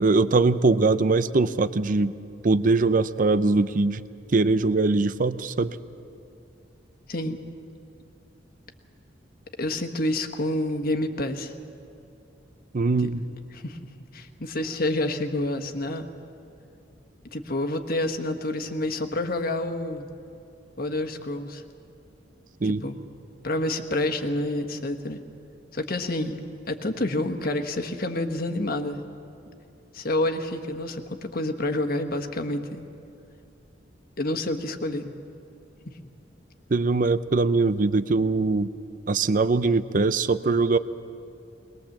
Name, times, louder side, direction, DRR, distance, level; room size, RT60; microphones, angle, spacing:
voice 1, 0.0-2.1 2.4-4.0 4.3-5.8 12.7-13.2 22.6-22.8 36.7-38.7 39.1-40.8, right 3 dB, 45° right, 14 dB, 0.6 m, -22 dB
voice 2, 7.1-7.4 9.6-11.5 13.0-13.1 13.5-13.8 14.1-16.1 17.3-20.1 20.8-21.6 22.6-23.0 23.4-25.2 25.7-26.4 26.7-29.1 29.9-32.8 34.2-35.1 35.8-35.9, left 1 dB, 55° left, 6 dB, 1.3 m, -28 dB
22.0 x 20.5 x 7.3 m, 2.7 s
head